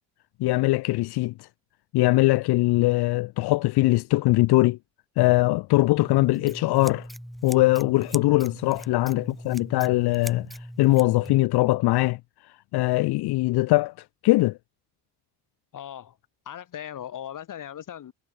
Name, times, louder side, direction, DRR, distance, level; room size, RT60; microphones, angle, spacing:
voice 1, 0.4-1.3 1.9-4.8 5.2-7.1 7.4-10.5 10.8-12.2 12.7-13.9 14.2-14.6, left 20 dB, 70° left, 0.5 m, -21 dB
Scissors, 6.0-11.4, equal, ahead, 2.9 m, -40 dB
voice 2, 15.7-16.2 16.5-18.1, left 10 dB, 50° left, 2.6 m, -38 dB
cardioid pair, 150°, 41 cm